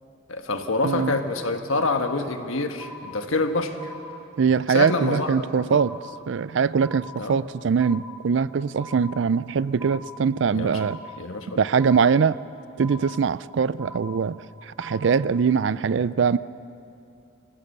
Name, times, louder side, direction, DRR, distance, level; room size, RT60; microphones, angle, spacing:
voice 1, 0.3-3.9 4.7-5.7 7.2-7.4 10.5-10.8 11.2-11.6, left 3 dB, 85° left, 6 dB, 1.4 m, -26 dB
sound 1, 0.8-1.5 1.8-2.5 2.8-3.5 3.8-4.5 4.8-5.5 5.8-6.5 6.8-7.5 7.8-8.5 8.8-9.5 9.8-10.5 10.8-11.5 11.8-12.5 12.8-13.5 13.8-14.5 14.8-15.5, equal, 10° right, 3.2 m, -42 dB
voice 2, 0.8-1.1 4.4-6.0 6.3-11.0 11.6-12.4 12.8-14.4 14.6-16.4, right 6 dB, 60° right, 18 dB, 0.4 m, -22 dB
26.5 x 16.0 x 6.7 m, 2.7 s
head